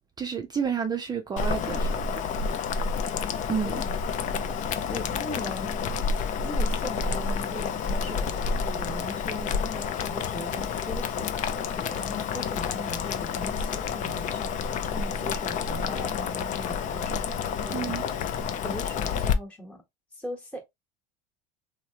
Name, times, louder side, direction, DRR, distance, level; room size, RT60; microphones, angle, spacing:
voice 1, 0.2-2.6 3.5-3.8 15.2-15.3 17.7-18.0, right 6 dB, 20° right, 0.5 m, -31 dB
Boiling, 1.4-19.3, left 6 dB, 40° left, 0.5 m, -29 dB
voice 2, 4.9-5.8 6.4-18.3 18.6-19.8 20.1-20.6, equal, 5° left, 1.1 m, -40 dB
3.0 x 2.8 x 2.8 m
supercardioid pair, 105°, 19 cm